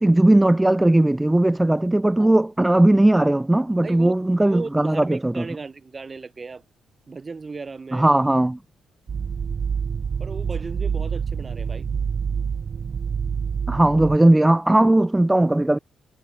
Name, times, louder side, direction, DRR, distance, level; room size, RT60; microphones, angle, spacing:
voice 1, 0.0-5.4 7.9-8.6 13.7-15.8, right 1 dB, 10° right, 0.5 m, -18 dB
voice 2, 3.8-6.6 7.1-8.1 10.2-11.9, right 4 dB, 30° right, 7.0 m, -36 dB
sound 1, 9.1-14.2, right 6 dB, 45° right, 0.9 m, -27 dB
cardioid pair, 100°, 0 cm